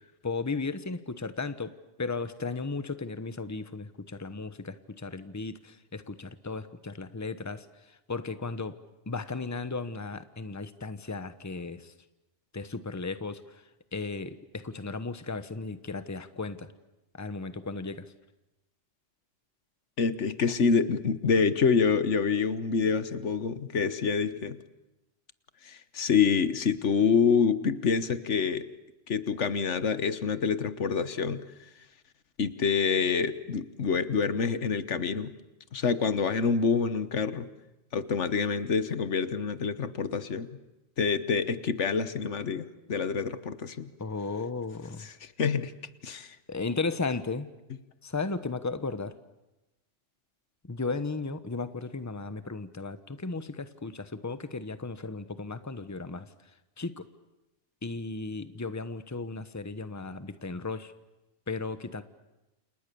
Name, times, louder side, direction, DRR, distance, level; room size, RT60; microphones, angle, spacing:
voice 1, 0.2-7.6 8.1-8.8 9.1-11.9 12.5-13.6 13.9-16.7 17.1-18.1 44.0-45.1 46.5-47.5 48.0-49.1 50.7-56.3 56.8-57.1 57.8-60.9 61.5-62.0, left 3 dB, 15° left, 12 dB, 1.0 m, -35 dB
voice 2, 20.0-24.6 25.6-28.7 29.1-31.4 32.4-35.3 35.7-37.5 37.9-40.5 41.0-43.9 45.0-45.7 46.0-46.4, left 5 dB, 85° left, 13 dB, 1.5 m, -27 dB
29.5 x 28.5 x 6.9 m, 0.99 s
omnidirectional pair, 1.2 m